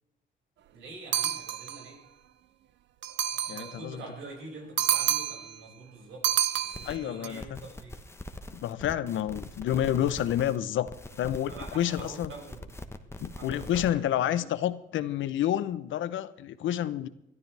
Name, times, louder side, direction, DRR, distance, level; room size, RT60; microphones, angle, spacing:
voice 1, 0.7-2.0 3.5-6.2 6.7-7.9 11.5-12.7 13.4-14.5, right 3 dB, 90° right, -1 dB, 6.1 m, -45 dB
sound 1, 1.1-1.9 3.0-3.8 4.8-5.6 6.2-7.3, right 11 dB, 65° right, 0.7 m, -29 dB
voice 2, 3.5-4.0 6.9-7.4 8.5-10.9 11.2-12.3 13.2-17.1, left 11 dB, 75° left, 14 dB, 0.8 m, -29 dB
sound 2, 6.5-7.0 7.3-10.6 10.9-13.9, left 1 dB, 15° left, 1.2 m, -43 dB
22.0 x 13.0 x 3.4 m, 0.85 s
cardioid pair, 90°, 20 cm